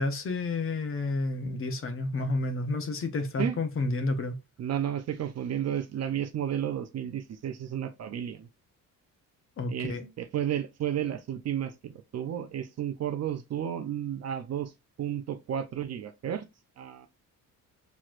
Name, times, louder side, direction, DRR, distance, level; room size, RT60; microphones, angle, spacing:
voice 1, 0.0-4.4 9.6-10.1, left 2 dB, 40° left, 0.8 m, -30 dB
voice 2, 4.6-8.5 9.7-14.7 15.0-16.5 16.8-17.1, right 10 dB, 50° right, 0.6 m, -32 dB
6.1 x 3.1 x 2.5 m
cardioid pair, 165°, 34 cm